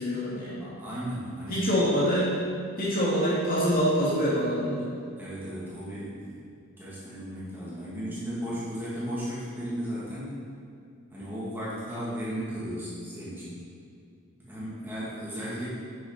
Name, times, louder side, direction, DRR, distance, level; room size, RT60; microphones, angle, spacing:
voice 1, 0.0-0.7 1.5-2.3 2.8-4.9, equal, 40° left, -7 dB, 2.2 m, -25 dB
voice 2, 0.6-1.7 5.2-6.4 6.8-10.4 11.1-13.6 14.4-15.7, equal, 10° right, -10 dB, 2.6 m, -35 dB
9.4 x 8.0 x 4.2 m, 2.4 s
head